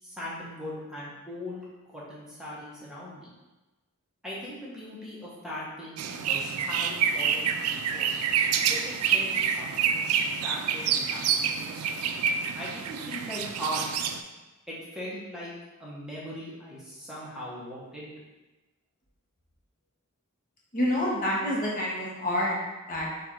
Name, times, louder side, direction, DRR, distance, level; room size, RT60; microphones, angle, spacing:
voice 1, 0.0-3.3 4.2-8.2 8.6-11.8 12.5-13.8 14.7-15.5 15.8-18.1, equal, 5° right, -8 dB, 1.0 m, -39 dB
sound 1, 6.0-14.2, right 7 dB, 80° right, 0.3 m, -27 dB
voice 2, 20.7-22.6 22.9-23.1, left 1 dB, 40° left, -5 dB, 1.0 m, -27 dB
4.4 x 2.5 x 4.4 m, 1.1 s
head